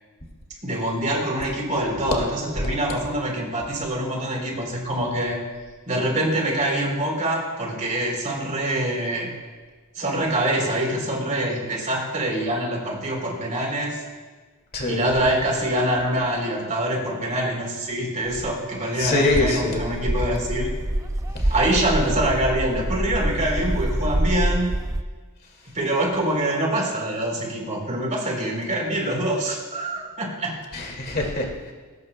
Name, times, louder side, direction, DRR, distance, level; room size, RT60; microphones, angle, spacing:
voice 1, 0.6-5.4 5.9-9.3 10.0-14.0 14.9-20.7 21.5-24.7 25.7-30.6, right 1 dB, 35° right, -1 dB, 3.5 m, -25 dB
voice 2, 14.7-15.0 19.0-19.8 21.3-21.5 30.7-31.7, left 2 dB, 45° left, 0 dB, 2.3 m, -24 dB
sound 1, 19.4-25.0, right 1 dB, 15° right, 0.4 m, -26 dB
20.5 x 18.5 x 2.2 m, 1.4 s
head